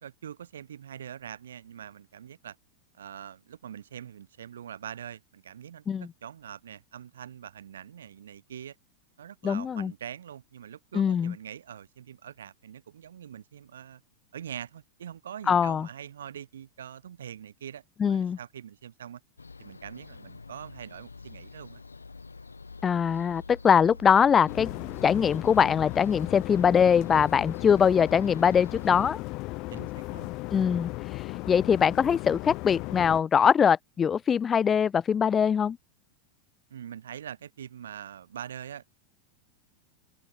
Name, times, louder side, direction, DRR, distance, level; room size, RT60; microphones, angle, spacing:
voice 1, 0.0-2.6 3.0-8.7 9.2-14.0 14.3-19.2 19.6-21.8 29.7-30.3 36.7-38.9, right 9 dB, 65° right, 3.0 m, -43 dB
voice 2, 9.4-9.9 10.9-11.3 15.5-15.9 18.0-18.4 22.8-24.7 25.0-29.2 30.5-35.8, left 7 dB, 20° left, 0.4 m, -22 dB
sound 1, 19.4-29.1, left 4 dB, 80° left, 7.2 m, -47 dB
sound 2, 24.5-33.2, left 23 dB, 40° left, 3.0 m, -36 dB
figure-of-eight pair, 90°, 0 cm